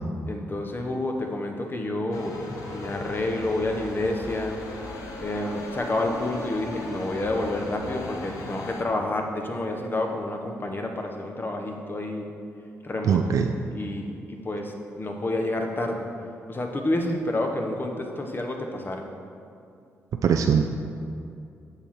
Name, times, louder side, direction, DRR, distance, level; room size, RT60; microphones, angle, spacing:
voice 1, 0.3-2.4 2.7-4.6 5.2-12.3 12.8-13.4 13.7-16.1 16.5-19.1, left 1 dB, 35° left, 3 dB, 1.1 m, -29 dB
sound 1, 2.1-8.8, left 2 dB, 70° left, 1.0 m, -37 dB
voice 2, 13.0-13.5 20.2-20.6, right 7 dB, 60° right, 5 dB, 0.4 m, -21 dB
6.9 x 5.8 x 4.5 m, 2.5 s
hypercardioid pair, 45°, 6 cm